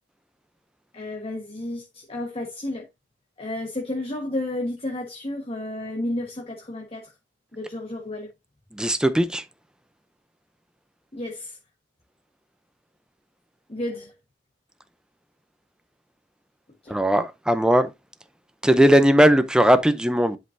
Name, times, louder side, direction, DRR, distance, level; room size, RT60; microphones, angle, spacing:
voice 1, 0.9-2.9 3.4-7.1 7.5-8.3 11.1-11.6 13.7-14.1 16.8-17.0, left 1 dB, 30° left, 1.4 m, -32 dB
voice 2, 8.7-9.4 16.9-17.9 18.6-20.4, equal, 5° right, 0.6 m, -18 dB
11.0 x 5.4 x 2.7 m
head